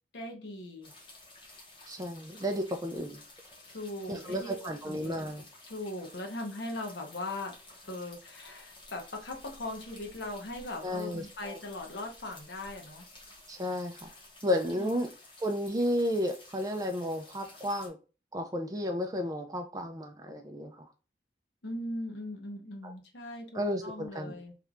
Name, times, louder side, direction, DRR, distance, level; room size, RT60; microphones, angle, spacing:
voice 1, 0.1-0.9 3.7-5.2 5.7-7.5 7.9-13.1 14.8-15.0 21.6-24.6, left 1 dB, 75° left, 2 dB, 0.9 m, -39 dB
sound 1, 0.8-17.9, left 2 dB, 25° left, 0.9 m, -53 dB
voice 2, 1.9-3.2 4.1-5.4 10.8-11.6 13.5-14.1 14.4-15.1 15.4-18.0 18.3-20.9 22.8-22.9 23.5-24.3, equal, 20° right, 5 dB, 0.4 m, -32 dB
3.2 x 3.0 x 2.5 m, 0.33 s
head